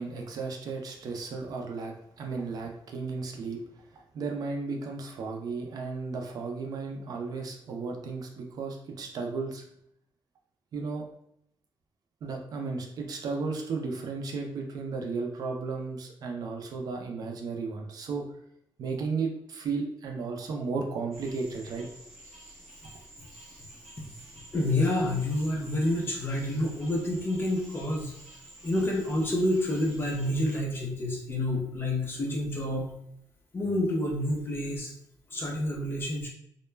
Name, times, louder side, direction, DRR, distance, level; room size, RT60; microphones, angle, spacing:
voice 1, 0.0-9.6 10.7-11.1 12.2-18.3 18.8-21.9, right 4 dB, 55° right, 2 dB, 0.4 m, -34 dB
sound 1, 21.1-30.6, right 1 dB, 5° left, 1.0 m, -50 dB
voice 2, 24.5-28.1 28.6-32.9 33.5-34.9 35.3-36.3, left 1 dB, 30° left, -1 dB, 0.5 m, -28 dB
2.2 x 2.1 x 3.2 m, 0.72 s
wide cardioid pair, 160°, 8 cm